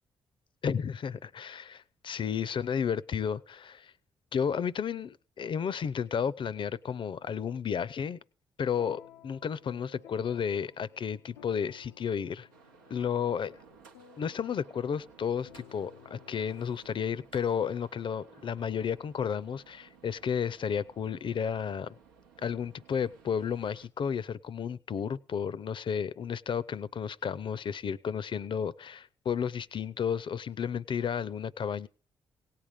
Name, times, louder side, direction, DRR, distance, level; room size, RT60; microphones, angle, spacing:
voice 1, 0.6-3.9 4.3-8.2 8.6-12.5 12.9-13.5 14.2-22.0 22.4-31.9, left 7 dB, 50° left, 0.6 m, -32 dB
sound 1, 8.7-17.3, left 9 dB, 85° left, 0.5 m, -56 dB
sound 2, 12.5-23.9, right 5 dB, 90° right, 0.9 m, -58 dB
17.5 x 7.5 x 5.1 m
hypercardioid pair, 40°, 11 cm